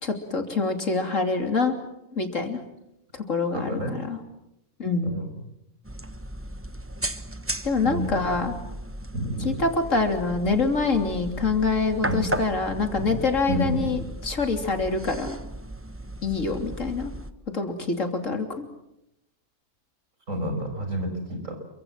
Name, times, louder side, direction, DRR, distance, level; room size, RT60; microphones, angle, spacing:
voice 1, 0.0-1.8 2.1-2.6 3.1-4.2 4.8-5.1 7.6-8.5 9.4-14.0 14.2-15.4 16.2-17.1 17.5-18.7, left 3 dB, 80° left, 5 dB, 3.5 m, -25 dB
voice 2, 3.5-3.9 5.0-5.4 7.8-8.4 9.1-9.6 12.1-12.3 13.0-13.2 13.5-13.9 20.3-21.6, equal, 90° right, 5 dB, 6.2 m, -29 dB
sound 1, 5.8-17.3, right 1 dB, 10° right, 1.0 m, -36 dB
29.0 x 24.0 x 7.5 m, 0.86 s
omnidirectional pair, 1.3 m